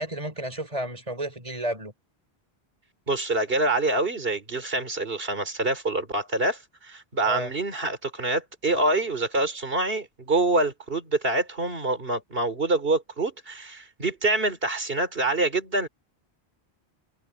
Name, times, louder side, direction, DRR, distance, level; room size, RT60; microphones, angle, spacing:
voice 1, 0.0-1.9 7.2-7.5, right 1 dB, 30° right, 5.9 m, -31 dB
voice 2, 3.1-15.9, right 2 dB, 60° right, 3.7 m, -26 dB
omnidirectional pair, 1.1 m